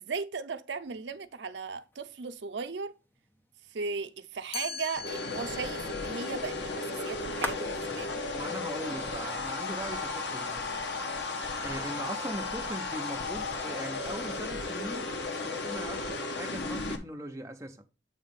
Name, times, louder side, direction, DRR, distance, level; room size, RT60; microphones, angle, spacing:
voice 1, 0.0-2.9 3.7-8.2, right 5 dB, 75° right, 0.6 m, -37 dB
sound 1, 0.7-10.8, left 2 dB, 10° left, 1.0 m, -47 dB
Chime, 4.5-10.4, left 6 dB, 30° left, 0.4 m, -45 dB
sound 2, 5.0-17.0, left 3 dB, 65° left, 1.1 m, -35 dB
voice 2, 8.3-10.8 11.6-15.1 15.4-17.8, right 1 dB, 15° right, 0.8 m, -40 dB
8.1 x 3.2 x 5.3 m
head